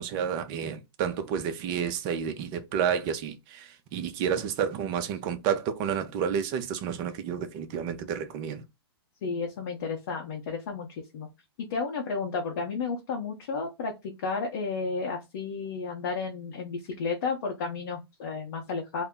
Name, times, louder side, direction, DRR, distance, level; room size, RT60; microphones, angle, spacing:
voice 1, 0.0-8.6, right 8 dB, 30° right, 0.4 m, -30 dB
voice 2, 9.2-11.3 11.6-19.0, left 4 dB, 50° left, 0.7 m, -32 dB
2.2 x 2.0 x 3.6 m
hypercardioid pair, 140°, 14 cm